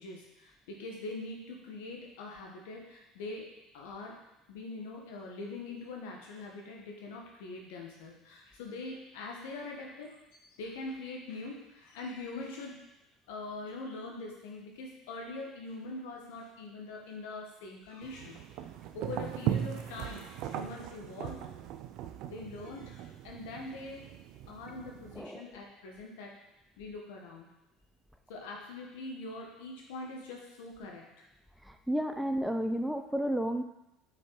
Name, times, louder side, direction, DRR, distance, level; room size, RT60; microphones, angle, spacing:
voice 1, 0.0-4.2 4.5-12.8 13.3-18.4 18.9-21.4 22.2-24.1 24.5-26.4 26.8-27.5 28.3-31.3, left 3 dB, 85° left, 0 dB, 1.4 m, -43 dB
sound 1, 18.0-25.2, right 11 dB, 65° right, 0.5 m, -39 dB
voice 2, 31.7-33.6, equal, 5° right, 6 dB, 0.6 m, -32 dB
5.5 x 4.4 x 4.8 m, 0.88 s
supercardioid pair, 85°, 0 cm